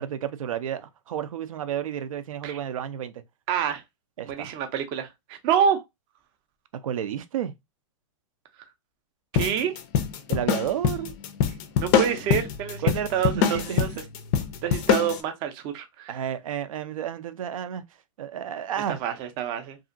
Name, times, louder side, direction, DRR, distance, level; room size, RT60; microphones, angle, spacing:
voice 1, 0.0-3.2 4.2-4.6 6.7-7.5 10.3-11.1 12.8-14.0 16.1-17.9 18.2-19.0, right 9 dB, 75° right, 0.5 m, -31 dB
voice 2, 3.5-3.8 4.3-5.8 9.3-9.7 11.8-12.8 13.1-13.9 14.6-16.2 19.0-19.8, right 8 dB, 30° right, 0.5 m, -27 dB
sound 1, 9.3-15.2, left 8 dB, 30° left, 0.4 m, -24 dB
2.7 x 2.5 x 2.5 m
hypercardioid pair, 150°, 17 cm